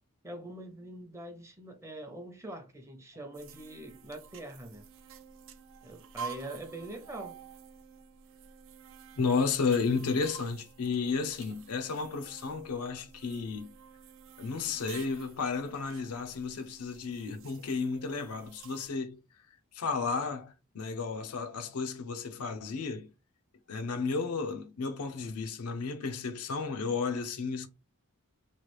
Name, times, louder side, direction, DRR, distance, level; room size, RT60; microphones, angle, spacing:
voice 1, 0.2-4.8 5.8-7.4, right 1 dB, 15° right, 0.6 m, -43 dB
sound 1, 3.3-18.9, right 6 dB, 60° right, 0.5 m, -50 dB
voice 2, 9.2-13.7 14.4-19.2 19.7-23.1 23.7-27.7, left 4 dB, 85° left, 0.5 m, -33 dB
3.1 x 2.3 x 3.0 m
head